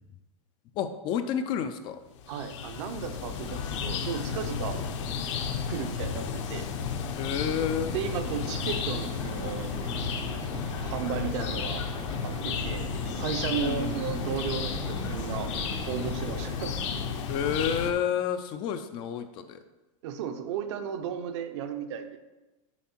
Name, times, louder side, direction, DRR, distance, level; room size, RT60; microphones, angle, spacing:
voice 1, 0.8-2.0 7.2-8.0 13.6-13.9 17.3-19.6, left 8 dB, 30° left, 9 dB, 0.3 m, -30 dB
sound 1, 2.2-17.9, left 6 dB, 65° left, 0.8 m, -33 dB
voice 2, 2.3-4.8 5.7-6.7 7.9-9.7 10.8-11.8 12.2-12.9 13.1-15.5 15.9-16.8 20.0-22.2, right 8 dB, 60° right, 8 dB, 0.7 m, -34 dB
sound 2, 7.8-16.9, right 6 dB, 25° right, 0.5 m, -43 dB
7.0 x 4.9 x 4.4 m, 1.1 s
supercardioid pair, 160°, 17 cm